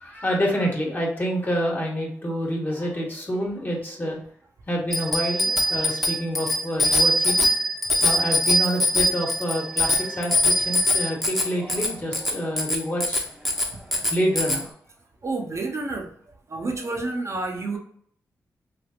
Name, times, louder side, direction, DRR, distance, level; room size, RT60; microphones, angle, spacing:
voice 1, 0.0-4.2 4.7-7.4 8.0-13.2 14.1-14.7, equal, 30° left, -1 dB, 1.2 m, -27 dB
Bicycle bell, 4.9-14.6, left 1 dB, ahead, 0.8 m, -23 dB
voice 2, 15.2-16.1 16.5-17.8, right 3 dB, 50° right, 2 dB, 0.7 m, -30 dB
3.3 x 2.6 x 2.4 m, 0.62 s
cardioid pair, 50°, 7 cm